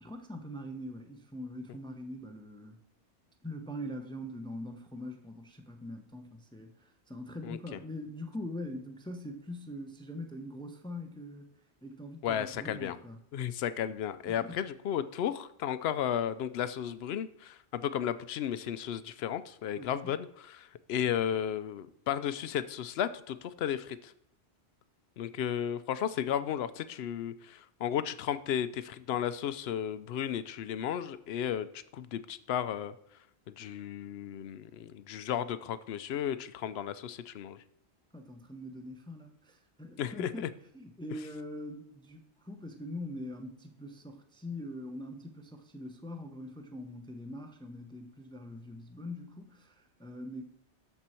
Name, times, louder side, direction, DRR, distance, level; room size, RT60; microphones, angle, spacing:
voice 1, 0.0-2.8 3.4-11.5 11.8-13.2 14.3-14.6 19.8-20.2 38.1-50.4, left 1 dB, 5° left, 5 dB, 0.6 m, -43 dB
voice 2, 7.4-7.8 12.2-13.0 13.3-24.1 25.2-32.9 33.6-37.6 40.0-40.5, left 9 dB, 70° left, 13 dB, 0.8 m, -34 dB
13.0 x 4.6 x 4.4 m, 0.75 s
omnidirectional pair, 1.2 m